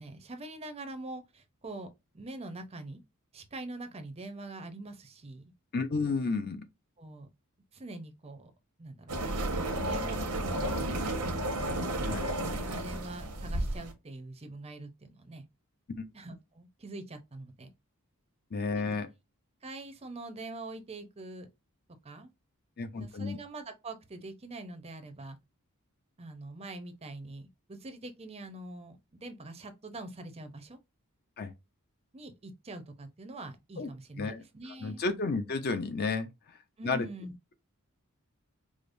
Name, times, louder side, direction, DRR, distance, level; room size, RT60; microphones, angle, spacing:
voice 1, 0.0-1.9 2.1-3.0 3.3-5.4 7.0-7.3 7.7-8.5 8.8-9.4 9.8-11.3 12.4-15.5 16.1-17.7 18.8-18.9 19.6-21.5 22.0-22.3 22.9-25.4 26.2-30.8 32.1-35.0 36.8-37.3, right 2 dB, 25° right, 0.5 m, -44 dB
voice 2, 5.7-6.6 12.1-12.4 16.0-16.1 18.5-19.1 22.8-23.4 31.4-31.5 33.8-33.9 34.2-34.4 34.8-36.3 36.8-37.1, left 4 dB, 45° left, 0.5 m, -31 dB
sound 1, 9.1-13.9, right 1 dB, 85° right, 0.9 m, -32 dB
4.9 x 2.0 x 2.5 m
head